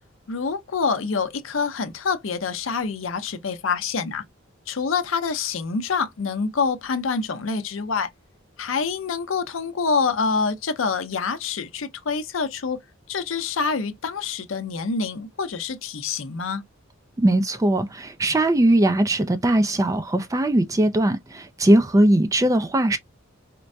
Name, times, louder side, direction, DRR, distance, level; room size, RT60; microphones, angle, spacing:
voice 1, 0.3-4.2 4.7-8.1 8.6-12.8 13.1-16.6, left 5 dB, 70° left, 0.6 m, -26 dB
voice 2, 17.2-23.0, right 1 dB, 15° right, 0.3 m, -20 dB
4.4 x 2.1 x 2.5 m
head